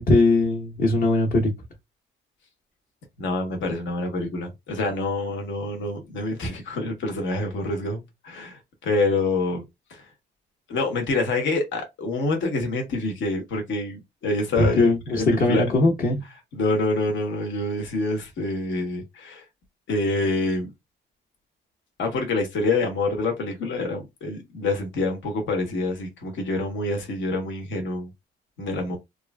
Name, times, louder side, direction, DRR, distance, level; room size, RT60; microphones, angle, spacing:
voice 1, 0.0-1.5 14.6-16.2, left 2 dB, 45° left, 0.9 m, -20 dB
voice 2, 3.2-9.6 9.9-10.1 10.7-15.6 16.5-19.4 19.9-20.7 22.0-28.1 28.6-29.0, left 2 dB, 70° left, 1.0 m, -26 dB
3.0 x 2.5 x 2.2 m
cardioid pair, 90°, 20 cm